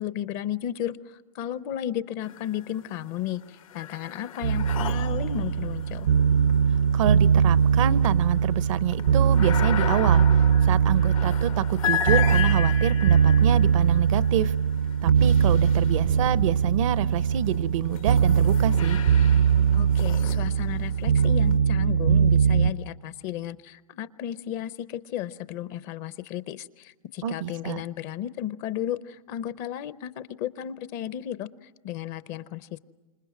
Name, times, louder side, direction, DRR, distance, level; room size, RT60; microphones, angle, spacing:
voice 1, 0.0-6.1 19.7-32.8, left 11 dB, 45° left, 16 dB, 0.8 m, -34 dB
sound 1, 2.2-2.9 3.2-16.4 17.1-21.5, left 9 dB, 75° left, 1.6 m, -35 dB
sound 2, 4.4-22.7, right 7 dB, 85° right, 1.1 m, -21 dB
voice 2, 6.9-10.2 10.6-14.5 15.0-19.0 27.2-27.8, right 11 dB, 70° right, 17 dB, 0.7 m, -27 dB
29.0 x 27.0 x 6.2 m, 1.2 s
hypercardioid pair, 125°, 17 cm